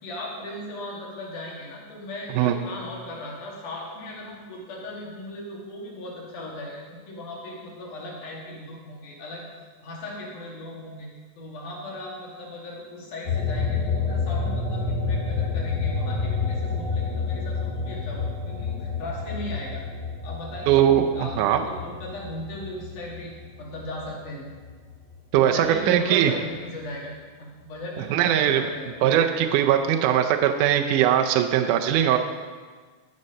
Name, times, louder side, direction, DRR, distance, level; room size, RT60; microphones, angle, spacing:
voice 1, 0.0-9.5 9.8-11.1 11.4-19.8 20.2-20.8 21.1-24.5 25.4-29.0, left 1 dB, 75° left, -3 dB, 3.7 m, -37 dB
sound 1, 13.2-24.1 24.5-26.0, left 4 dB, 25° left, 1.4 m, -29 dB
voice 2, 20.7-21.6 25.3-26.3 28.1-28.6 29.0-32.2, right 10 dB, 80° right, 5 dB, 2.1 m, -20 dB
14.5 x 6.5 x 5.4 m, 1.5 s
omnidirectional pair, 3.7 m